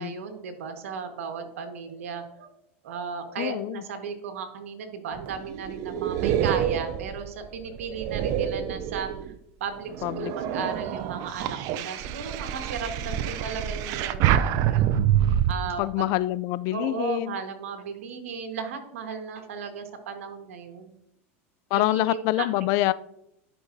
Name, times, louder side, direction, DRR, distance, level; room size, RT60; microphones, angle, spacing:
voice 1, 0.0-2.5 2.8-9.1 9.6-15.0 15.5-16.1 16.7-20.9 21.7-22.5, right 6 dB, 85° right, 6 dB, 1.5 m, -35 dB
voice 2, 3.4-3.8 10.0-10.3 10.6-10.7 15.8-17.4 21.7-22.9, left 17 dB, 55° left, 18 dB, 0.4 m, -26 dB
sound 1, 5.1-9.4 9.9-15.5, right 10 dB, 50° right, 0.5 m, -27 dB
11.5 x 5.6 x 2.7 m, 0.81 s
supercardioid pair, 115°, 7 cm